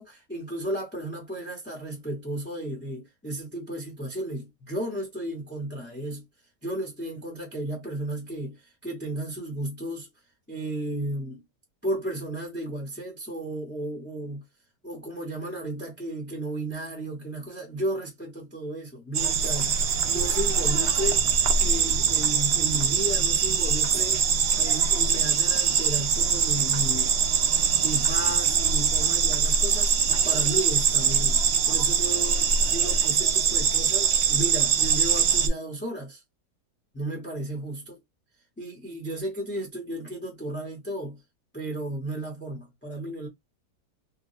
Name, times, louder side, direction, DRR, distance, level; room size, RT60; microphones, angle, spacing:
voice 1, 0.0-6.2 6.6-10.1 10.5-11.4 11.8-14.4 14.8-21.2 21.6-24.2 24.6-27.2 27.8-29.9 30.2-36.2 36.9-38.0 38.6-41.2 41.5-43.3, right 1 dB, 10° left, 0.7 m, -34 dB
sound 1, 19.1-35.5, right 6 dB, 65° right, 0.6 m, -23 dB
3.6 x 2.2 x 2.7 m
omnidirectional pair, 1.7 m